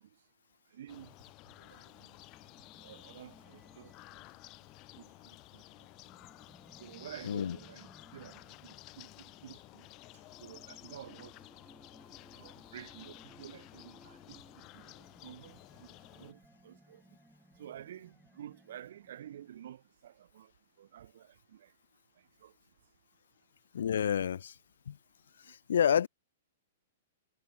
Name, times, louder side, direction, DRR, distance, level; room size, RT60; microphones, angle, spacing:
voice 1, 0.7-1.1 1.6-2.1 2.8-3.9 5.0-5.6 6.8-9.9 10.4-11.3 12.3-17.0 17.6-20.5 20.8-21.7 22.4-22.5, right 11 dB, 55° right, 0.9 m, -51 dB
sound 1, 0.9-16.3, left 22 dB, 25° left, 2.2 m, -54 dB
sound 2, 1.9-19.8, equal, ahead, 1.7 m, -62 dB
voice 2, 7.2-7.6 23.7-24.6 24.9-25.0 25.4-26.1, left 8 dB, 80° left, 0.4 m, -29 dB
hypercardioid pair, 175°, 0 cm